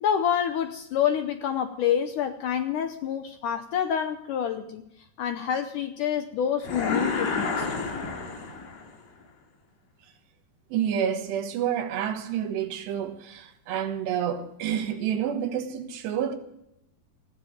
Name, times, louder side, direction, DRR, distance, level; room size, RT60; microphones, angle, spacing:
voice 1, 0.0-4.8 5.2-7.7, left 9 dB, 85° left, 1.8 m, -27 dB
sound 1, 6.6-9.0, left 4 dB, 60° left, 4.2 m, -29 dB
voice 2, 10.7-16.4, right 9 dB, 80° right, 3.6 m, -29 dB
20.0 x 14.5 x 5.1 m
omnidirectional pair, 4.8 m